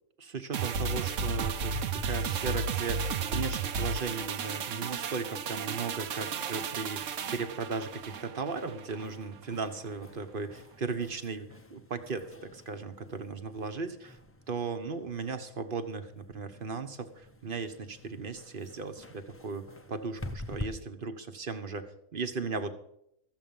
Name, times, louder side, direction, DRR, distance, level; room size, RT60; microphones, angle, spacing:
voice 1, 0.2-14.2 14.5-21.8 22.1-22.7, right 4 dB, 40° right, 9 dB, 1.2 m, -37 dB
sound 1, 0.5-9.1 9.4-9.5, right 5 dB, 60° right, 1.1 m, -33 dB
sound 2, 0.9-20.7, left 1 dB, 20° left, 0.3 m, -49 dB
14.0 x 7.7 x 7.1 m, 0.76 s
omnidirectional pair, 1.6 m